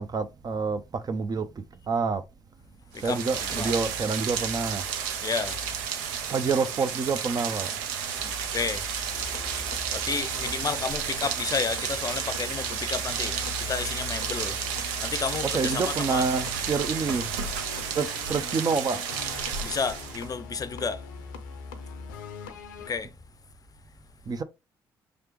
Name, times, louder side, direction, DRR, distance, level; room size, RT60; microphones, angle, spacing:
voice 1, 0.0-2.2 3.0-4.9 6.3-7.7 15.5-17.3 17.9-19.0 24.3-24.4, right 4 dB, 40° right, 0.7 m, -28 dB
Rain, 2.9-20.3, right 8 dB, 80° right, 0.6 m, -32 dB
voice 2, 5.2-5.6 8.2-8.8 9.9-13.4 13.7-14.6 15.0-16.3 19.6-21.0 22.9-23.1, left 5 dB, 35° left, 0.5 m, -31 dB
sound 1, 9.1-22.9, left 5 dB, 85° left, 0.5 m, -41 dB
5.1 x 3.3 x 3.0 m
hypercardioid pair, 50°, 10 cm